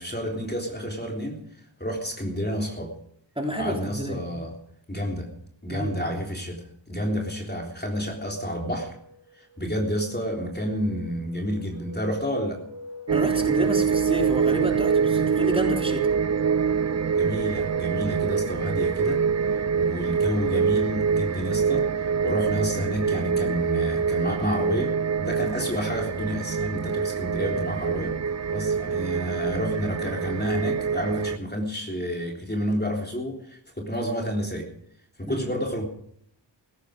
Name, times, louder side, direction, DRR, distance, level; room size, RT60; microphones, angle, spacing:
voice 1, 0.0-1.4 1.8-2.9 3.5-4.6 4.9-5.3 5.6-9.0 9.4-12.6 17.1-19.2 19.5-28.2 28.5-34.7 35.2-35.9, equal, 20° left, 1 dB, 3.5 m, -30 dB
voice 2, 3.4-4.2 5.7-5.9 13.1-16.1 35.3-35.4, right 1 dB, 10° right, 1 dB, 3.7 m, -29 dB
sound 1, 8.8-26.1, right 4 dB, 75° right, 4.3 m, -42 dB
sound 2, 13.1-31.4, right 6 dB, 35° right, 0.5 m, -25 dB
17.0 x 15.5 x 5.2 m, 0.68 s
wide cardioid pair, 70°, 45 cm